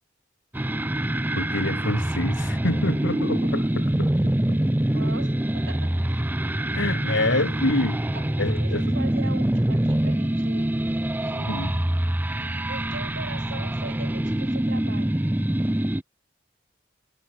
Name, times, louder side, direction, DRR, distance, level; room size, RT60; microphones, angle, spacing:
sound 1, 0.5-16.0, right 1 dB, 10° right, 0.5 m, -25 dB
voice 1, 1.3-4.1 4.5-4.6 6.7-8.9 11.4-11.8, left 1 dB, 90° left, 5.9 m, -27 dB
voice 2, 4.9-6.3 8.1-8.2 8.6-10.8 11.2-11.8 12.7-15.2, right 3 dB, 85° right, 4.6 m, -40 dB
head